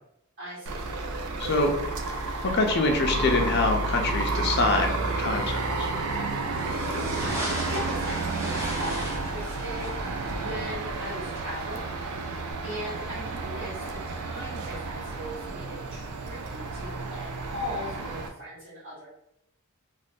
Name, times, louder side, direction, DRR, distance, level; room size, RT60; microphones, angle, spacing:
voice 1, 0.4-0.8 6.5-7.4 7.7-11.9 12.3-19.1, equal, 50° right, -11 dB, 1.2 m, -39 dB
sound 1, 0.7-18.3, right 3 dB, 90° right, 0.4 m, -31 dB
voice 2, 1.4-2.2 2.5-5.9, left 2 dB, 50° left, 3 dB, 0.5 m, -25 dB
sound 2, 6.5-12.5, right 1 dB, 10° right, 0.7 m, -37 dB
2.5 x 2.4 x 3.4 m, 0.77 s
head